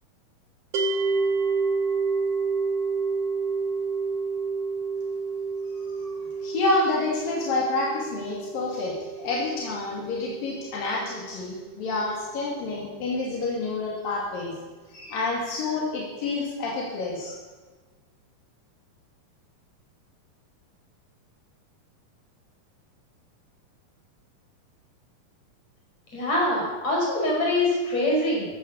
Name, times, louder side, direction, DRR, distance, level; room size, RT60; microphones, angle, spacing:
sound 1, 0.7-11.9, right 4 dB, 60° right, 3.8 m, -29 dB
voice 1, 5.7-14.5 14.9-17.4, left 3 dB, 85° left, -3 dB, 4.3 m, -28 dB
voice 2, 26.1-28.5, left 1 dB, 50° left, -2 dB, 6.8 m, -24 dB
15.0 x 13.5 x 6.8 m, 1.3 s
omnidirectional pair, 3.9 m